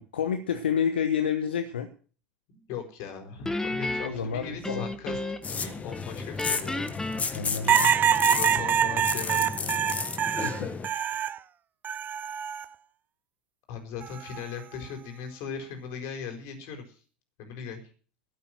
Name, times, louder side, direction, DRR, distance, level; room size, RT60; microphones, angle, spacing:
voice 1, 0.0-1.9 4.0-5.2 7.3-8.0 10.3-10.7, left 7 dB, 80° left, 9 dB, 1.1 m, -29 dB
voice 2, 2.5-5.2 5.5-7.0 8.3-9.8 13.7-17.0 17.4-17.8, left 6 dB, 55° left, 5 dB, 4.5 m, -39 dB
Guitar, 3.5-5.6 5.9-8.2, left 2 dB, 10° left, 1.5 m, -33 dB
sound 1, 5.4-10.9, left 5 dB, 25° left, 1.6 m, -32 dB
sound 2, 7.7-11.4 11.8-12.6 14.0-14.4, right 9 dB, 35° right, 0.7 m, -25 dB
13.5 x 8.5 x 7.6 m, 0.40 s
hypercardioid pair, 75°, 6 cm